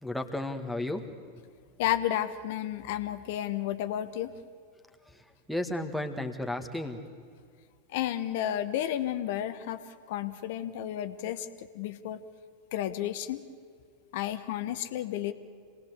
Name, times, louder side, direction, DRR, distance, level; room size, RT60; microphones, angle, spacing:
voice 1, 0.0-1.4 5.1-7.3, left 1 dB, ahead, 3 dB, 2.0 m, -34 dB
voice 2, 1.8-4.3 7.9-9.8 10.1-11.5 11.7-12.2 12.7-13.4 14.1-15.3, left 12 dB, 50° left, 11 dB, 1.2 m, -32 dB
27.0 x 19.5 x 8.2 m, 2.1 s
figure-of-eight pair, 90°, 0 cm